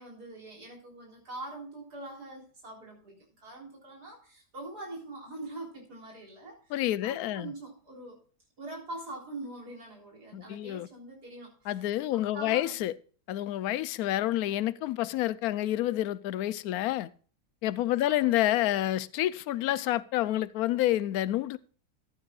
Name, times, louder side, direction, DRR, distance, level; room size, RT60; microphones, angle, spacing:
voice 1, 0.0-8.2 8.6-11.8 12.3-12.9 18.0-18.3, right 2 dB, 75° right, 4.3 m, -43 dB
voice 2, 6.7-7.5 10.3-10.9 11.7-12.9 13.3-17.1 17.6-21.6, left 14 dB, 70° left, 1.1 m, -28 dB
14.5 x 11.0 x 2.4 m
omnidirectional pair, 1.7 m